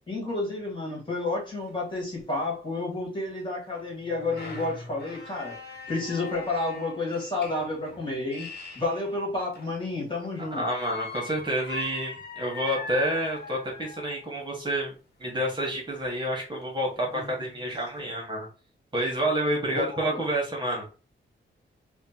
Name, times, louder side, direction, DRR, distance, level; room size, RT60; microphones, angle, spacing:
voice 1, 0.0-5.6 5.9-8.5 8.8-10.6 19.7-20.2, left 2 dB, 25° left, -3 dB, 1.9 m, -30 dB
sound 1, 1.4-1.5 1.7-1.8 2.4-2.5 3.7-9.9 10.6-14.3 16.0-16.1 16.6-16.7 17.0-18.1, left 2 dB, 55° left, 1.3 m, -42 dB
voice 2, 10.5-14.9 15.2-18.5 18.9-20.8, right 1 dB, 25° right, -2 dB, 1.6 m, -29 dB
5.1 x 2.4 x 2.8 m, 0.34 s
wide cardioid pair, 105°, 20 cm